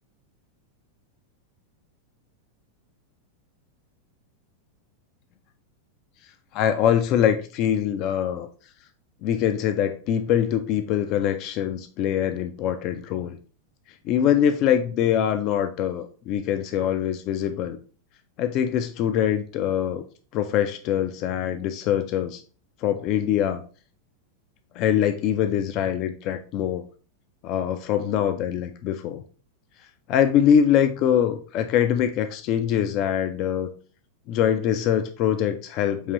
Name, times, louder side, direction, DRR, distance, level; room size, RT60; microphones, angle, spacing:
voice 1, 6.5-8.5 9.2-13.4 14.0-17.8 18.4-20.0 20.3-22.4 22.8-23.6 24.7-26.8 27.4-29.2 30.1-33.7 34.3-36.1, left 9 dB, 40° left, 9 dB, 0.4 m, -23 dB
4.7 x 2.9 x 3.8 m, 0.39 s
figure-of-eight pair, 90°, 0 cm